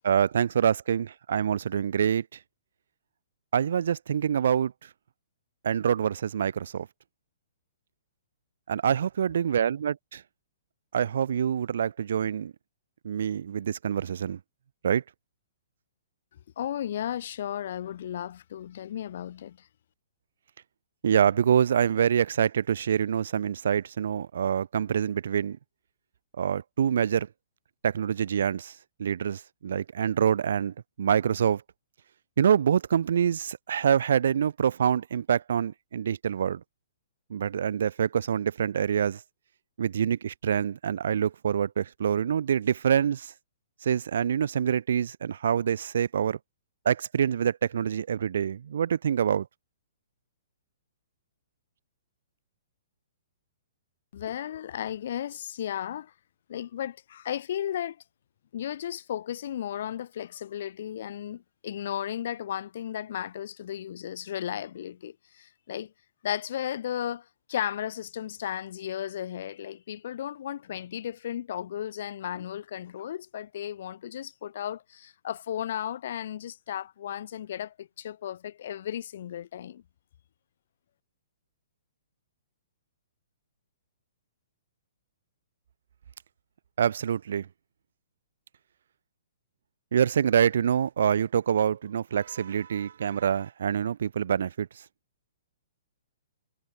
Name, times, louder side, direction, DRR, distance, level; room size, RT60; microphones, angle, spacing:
voice 1, 0.0-2.3 3.5-4.7 5.6-6.9 8.7-10.2 10.9-12.5 13.0-14.4 14.8-15.0 21.0-25.6 26.4-27.3 27.8-28.7 29.0-31.6 32.4-36.6 37.3-39.2 39.8-43.3 43.8-46.4 46.9-49.5 86.8-87.5 89.9-94.7, right 8 dB, 65° right, 0.4 m, -26 dB
voice 2, 16.6-19.7 54.1-56.1 56.5-58.0 58.5-65.9 66.2-79.8, left 10 dB, 50° left, 1.2 m, -35 dB
hypercardioid pair, 165°, 0 cm